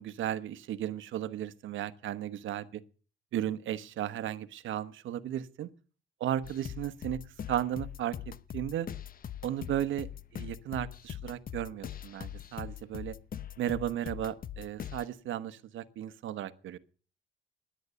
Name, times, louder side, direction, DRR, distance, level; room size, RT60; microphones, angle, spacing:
voice 1, 0.0-2.8 3.3-5.7 6.2-7.2 7.5-8.2 8.5-8.9 9.4-10.1 10.3-13.2 13.6-16.8, right 11 dB, 80° right, 1.1 m, -35 dB
sound 1, 6.4-15.1, left 10 dB, 45° left, 0.7 m, -42 dB
13.5 x 10.5 x 6.9 m
cardioid pair, 90°, 20 cm